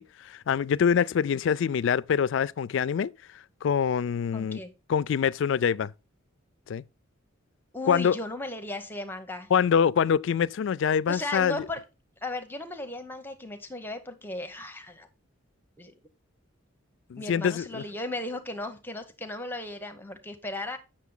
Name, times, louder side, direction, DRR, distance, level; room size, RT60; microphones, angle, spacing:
voice 1, 0.0-3.1 3.6-4.6 4.9-5.9 6.7-6.8 7.9-8.2 9.5-11.6 17.1-17.8, left 7 dB, 60° left, 0.3 m, -25 dB
voice 2, 4.3-4.7 7.7-9.5 11.1-11.8 12.2-15.1 15.8-15.9 17.2-20.8, left 2 dB, 10° left, 0.8 m, -36 dB
8.3 x 6.4 x 3.7 m
head